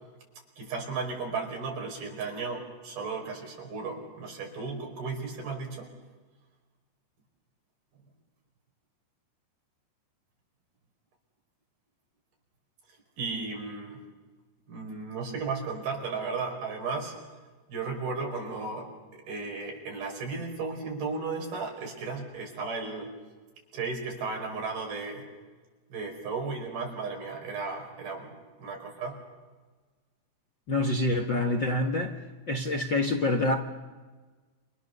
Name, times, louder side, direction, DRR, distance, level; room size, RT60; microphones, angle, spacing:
voice 1, 0.6-5.9 13.2-14.0 14.7-17.2 17.7-23.1 23.7-25.3 25.9-29.2, right 4 dB, 85° right, 6.9 m, -35 dB
voice 2, 30.7-32.2 32.5-33.5, left 2 dB, 50° left, 1.4 m, -26 dB
29.0 x 27.5 x 6.8 m
omnidirectional pair, 4.2 m